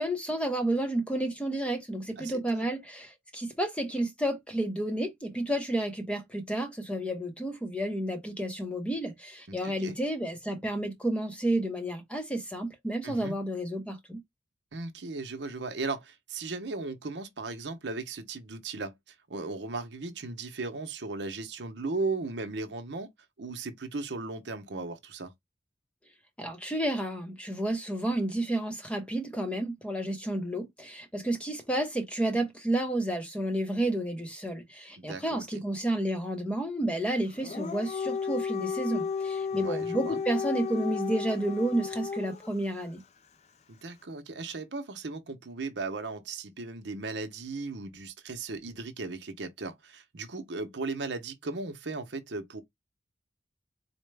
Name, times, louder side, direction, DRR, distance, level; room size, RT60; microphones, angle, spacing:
voice 1, 0.0-14.2 26.4-43.0, right 1 dB, 5° left, 0.7 m, -31 dB
voice 2, 2.2-2.7 9.5-10.0 13.0-13.4 14.7-23.1 23.4-25.3 35.0-35.6 39.5-40.2 43.7-52.6, right 3 dB, 75° right, 0.8 m, -37 dB
Dog, 37.3-42.5, left 6 dB, 35° left, 0.3 m, -33 dB
4.3 x 2.1 x 3.3 m
head